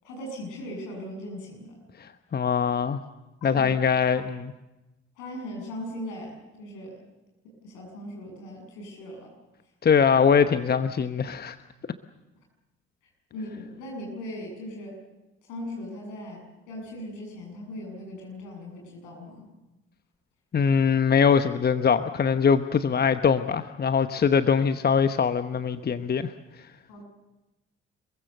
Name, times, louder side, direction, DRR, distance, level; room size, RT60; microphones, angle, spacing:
voice 1, 0.0-1.8 3.4-3.7 4.2-4.3 5.2-7.0 7.6-9.3 13.3-15.0 15.5-19.5 26.9-27.1, left 1 dB, 65° left, 2 dB, 7.9 m, -39 dB
voice 2, 2.0-3.0 3.4-4.5 9.8-11.6 20.5-26.3, left 6 dB, 30° left, 11 dB, 1.0 m, -22 dB
27.5 x 22.5 x 6.8 m, 1.0 s
figure-of-eight pair, 50°, 33 cm